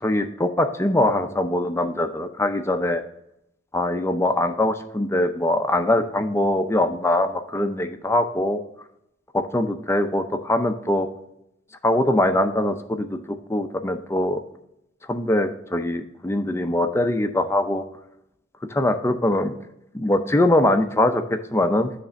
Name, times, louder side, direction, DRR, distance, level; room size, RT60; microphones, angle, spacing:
voice 1, 0.0-3.0 3.7-8.6 9.3-11.1 11.8-14.4 15.1-17.8 18.7-19.6 19.9-21.9, left 1 dB, 15° left, 7 dB, 0.5 m, -22 dB
9.7 x 3.3 x 5.1 m, 0.79 s
head